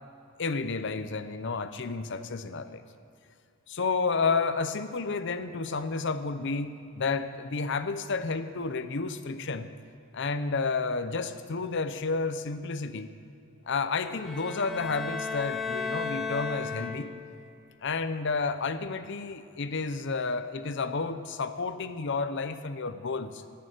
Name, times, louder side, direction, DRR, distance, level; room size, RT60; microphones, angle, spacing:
voice 1, 0.4-2.8 3.7-9.7 10.1-13.1 13.7-17.1 17.8-23.4, left 4 dB, 55° left, 11 dB, 0.7 m, -31 dB
sound 1, 14.1-17.4, left 5 dB, ahead, 1.1 m, -34 dB
17.0 x 6.9 x 9.0 m, 2.6 s
head